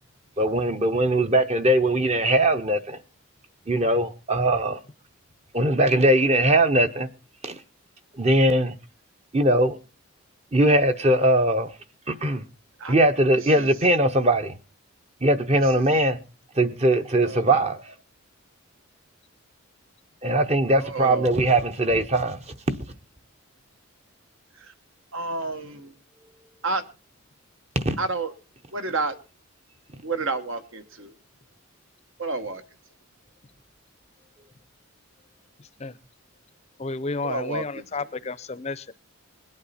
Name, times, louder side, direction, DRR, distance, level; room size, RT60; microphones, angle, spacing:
voice 1, 0.4-3.0 3.7-4.8 5.5-7.1 7.4-7.6 8.2-8.7 9.3-9.8 10.5-11.7 12.1-12.4 12.9-14.6 15.2-16.2 16.6-17.8 20.2-22.4 22.7-22.8 27.8-28.0, right 1 dB, 30° right, 0.8 m, -20 dB
voice 2, 13.4-13.7 15.5-16.0 17.3-17.5 20.8-21.4 24.5-24.7 25.1-25.9 26.6-26.8 28.0-28.3 28.7-29.2 30.0-31.1 32.2-32.6 37.2-37.9, right 3 dB, 70° right, 1.3 m, -30 dB
voice 3, 36.8-38.9, left 3 dB, 30° left, 0.6 m, -31 dB
21.0 x 8.6 x 4.2 m
head